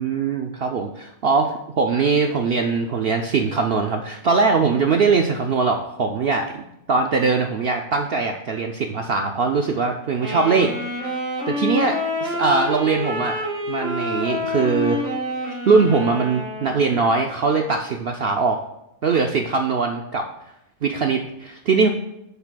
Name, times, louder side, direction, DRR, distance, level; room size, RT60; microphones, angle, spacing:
voice 1, 0.0-6.6 6.9-10.7 11.5-13.4 13.7-15.0 15.7-18.6 19.0-20.3 20.8-21.9, right 4 dB, 65° right, 3 dB, 0.6 m, -21 dB
Wind instrument woodwind instrument, 10.2-17.1, left 1 dB, 40° right, 1.7 m, -27 dB
12.0 x 6.7 x 2.2 m, 0.82 s
omnidirectional pair, 1.5 m